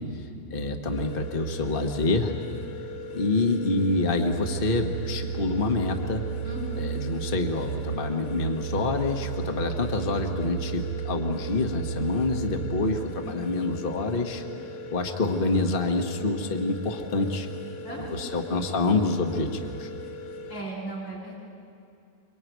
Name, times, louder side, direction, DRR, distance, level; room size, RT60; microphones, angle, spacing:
voice 1, 0.0-2.4 3.1-6.2 6.8-14.4 14.9-17.5 18.0-19.9, left 3 dB, 55° left, 3 dB, 0.6 m, -27 dB
sound 1, 0.9-20.6, left 2 dB, 75° left, 3.1 m, -40 dB
sound 2, 3.8-13.0, right 9 dB, 75° right, 6.2 m, -34 dB
voice 2, 6.4-6.9 17.8-18.3 20.5-21.4, right 1 dB, 30° left, -6 dB, 8.6 m, -36 dB
25.5 x 24.0 x 9.4 m, 2.6 s
omnidirectional pair, 3.3 m